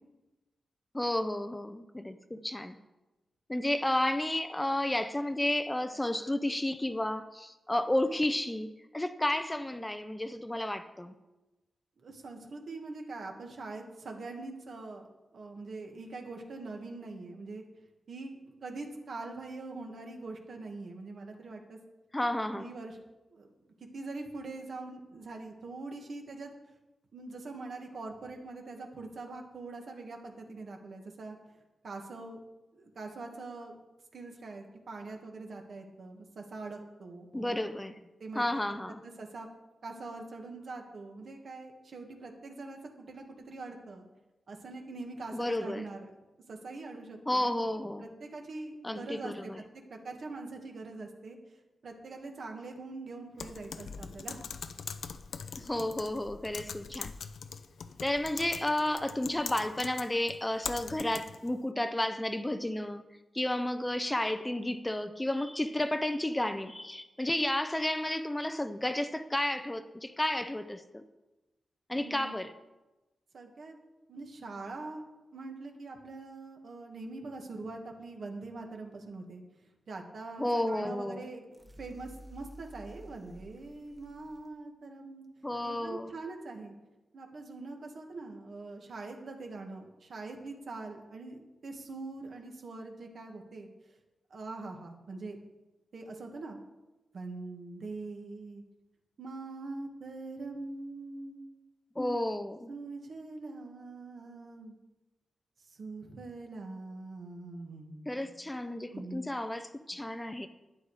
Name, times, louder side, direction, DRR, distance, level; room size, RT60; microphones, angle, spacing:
voice 1, 0.9-2.8 3.5-11.2 22.1-22.7 37.3-38.0 38.3-39.0 45.3-45.8 47.3-48.1 48.8-49.6 55.6-57.1 58.0-63.0 63.3-71.0 71.9-72.5 80.4-81.3 85.4-86.1 102.0-102.7 108.1-110.5, left 1 dB, 10° left, 9 dB, 0.6 m, -32 dB
voice 2, 12.0-15.1 15.3-17.6 18.1-21.8 22.5-23.0 23.3-23.5 23.9-26.5 27.1-31.4 31.8-32.4 32.7-33.7 34.1-37.5 38.2-38.8 39.0-39.5 39.8-44.1 44.5-46.1 46.5-47.5 48.0-49.5 49.9-51.4 51.8-54.4 71.9-72.3 73.3-73.8 74.1-75.0 75.3-79.4 79.9-85.2 85.6-86.7 87.1-93.7 94.3-95.4 95.9-96.6 97.1-98.6 99.2-101.5 102.7-104.8 105.7-108.0 108.9-109.3, right 3 dB, 65° right, 3 dB, 1.9 m, -43 dB
Typing, 53.4-61.5, left 6 dB, 80° left, 0.7 m, -42 dB
sound 1, 81.5-84.5, equal, 15° right, 1.4 m, -52 dB
12.0 x 10.0 x 4.9 m, 1.1 s
wide cardioid pair, 120°, 0 cm